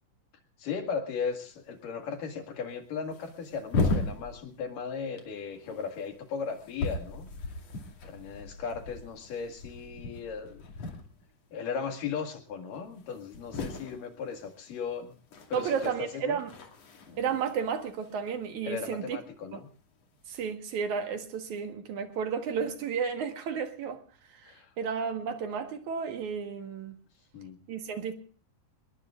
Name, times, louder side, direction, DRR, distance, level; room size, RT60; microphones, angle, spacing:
voice 1, 0.6-7.6 8.0-11.0 11.5-15.1 15.5-16.4 18.7-19.7 24.4-24.7 27.3-27.6, left 6 dB, 80° left, 3.8 m, -37 dB
sound 1, 1.3-1.5 1.7-1.8 2.5-2.7 3.0-4.9 5.2-11.5 11.7-12.1 12.4-12.5 12.7-19.0 19.9-20.4, left 3 dB, 55° left, 3.4 m, -37 dB
voice 2, 15.5-16.5 17.2-19.2 19.5-19.6 20.3-24.0 24.3-27.0 27.7-28.1, right 6 dB, 65° right, 2.8 m, -32 dB
27.0 x 20.5 x 2.5 m
omnidirectional pair, 3.8 m